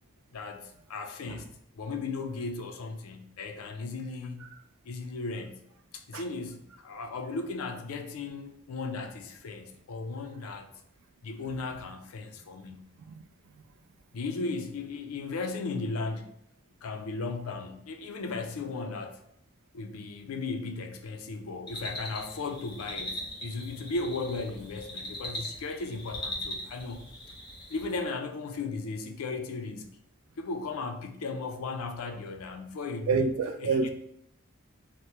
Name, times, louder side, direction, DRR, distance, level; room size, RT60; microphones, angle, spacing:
voice 1, 0.3-1.5 1.7-4.5 4.8-5.6 5.9-10.7 11.2-12.9 14.1-16.3 16.8-19.2 19.7-27.1 27.7-30.0 30.4-33.3 33.6-33.9, left 3 dB, 85° left, 0.4 m, -36 dB
sound 1, 21.7-28.0, left 1 dB, 20° left, 0.6 m, -40 dB
voice 2, 33.1-33.9, right 4 dB, 75° right, 0.3 m, -27 dB
2.9 x 2.1 x 3.3 m
head